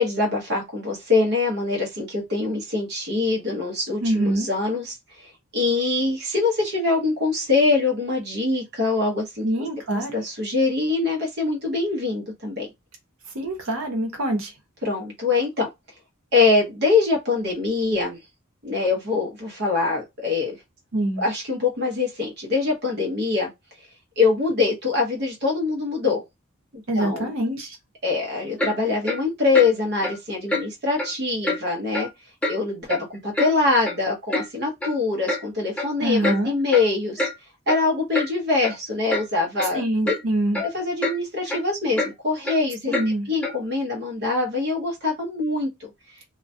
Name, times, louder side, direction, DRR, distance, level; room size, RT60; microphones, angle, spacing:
voice 1, 0.0-5.0 5.5-9.5 9.9-12.7 14.8-15.7 16.3-18.2 18.6-20.6 21.2-23.5 24.2-26.2 26.9-27.3 28.0-32.1 32.5-37.3 37.7-40.1 40.6-42.9 43.3-45.7, left 3 dB, 50° right, 0.7 m, -23 dB
voice 2, 4.0-4.5 9.4-10.2 13.3-14.5 20.9-21.2 26.9-27.8 36.0-36.6 39.7-40.6 42.9-43.3, right 1 dB, 80° right, 0.8 m, -24 dB
Clock, 28.6-28.8 29.1-29.2 29.5-29.7 30.0-30.2 30.5-30.6 31.0-31.1 31.4-31.6 31.9-32.1 32.4-32.6 32.9-33.5 33.8-33.9 34.3-34.5 34.8-35.0 35.3-35.4 35.8-35.9 36.2-36.4 36.7-36.9 37.2-37.3 37.7-37.8 38.1-38.3 38.6-38.7 39.1-39.2 39.6-39.7 40.1-40.2 40.5-40.7 41.0-41.2 41.5-41.6 42.0-42.1 42.5-42.6 42.9-43.1 43.4-43.6, left 1 dB, 5° left, 0.5 m, -26 dB
2.3 x 2.1 x 2.6 m
head